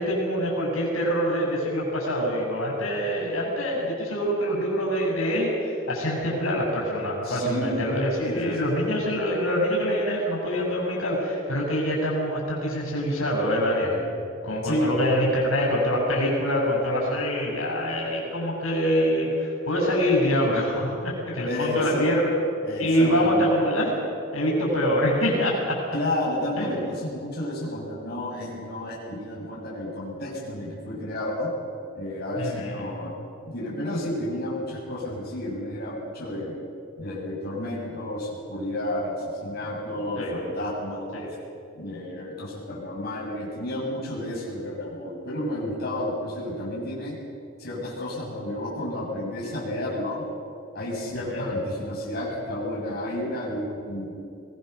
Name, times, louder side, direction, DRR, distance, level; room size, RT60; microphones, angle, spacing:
voice 1, 0.0-14.0 14.4-22.3 22.8-23.9 24.3-25.8 26.6-26.8 32.4-32.7 40.2-40.3 41.1-41.3 51.3-51.4, equal, 85° left, -3 dB, 7.7 m, -25 dB
voice 2, 7.2-7.8 8.3-8.7 14.6-14.9 21.5-22.1 22.6-23.5 25.9-31.5 32.0-33.1 33.4-36.6 37.0-41.3 41.7-47.2 47.6-50.2 50.7-54.1, left 1 dB, 50° left, -5 dB, 7.3 m, -31 dB
24.0 x 20.0 x 6.9 m, 2.7 s
head